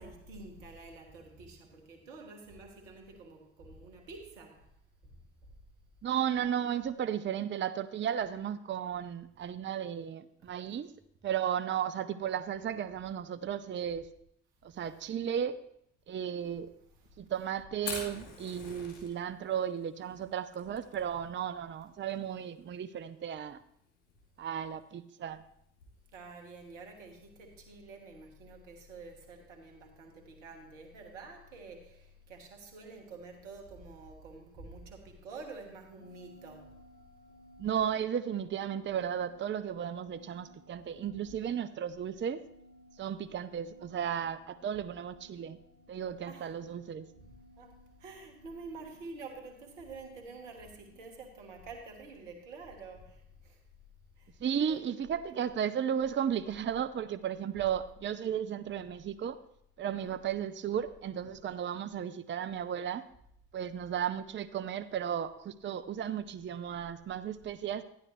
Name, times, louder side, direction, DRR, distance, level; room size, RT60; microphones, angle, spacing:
voice 1, 0.0-4.7 5.0-5.2 17.0-17.2 26.1-36.8 46.2-46.6 47.2-53.6 54.2-54.4 54.7-54.8 59.8-60.2, right 3 dB, 85° right, 1.4 m, -48 dB
voice 2, 6.0-10.9 11.2-14.1 14.6-15.6 16.1-16.7 17.2-23.6 24.4-25.4 37.6-42.4 43.0-45.6 45.9-47.1 54.4-59.4 59.8-63.0 63.5-67.8, right 9 dB, 30° right, 0.6 m, -34 dB
Fire, 17.8-27.5, left 4 dB, 80° left, 2.5 m, -48 dB
sound 1, 36.0-50.9, equal, 65° left, 3.2 m, -59 dB
12.0 x 10.5 x 3.1 m
hypercardioid pair, 50°, 36 cm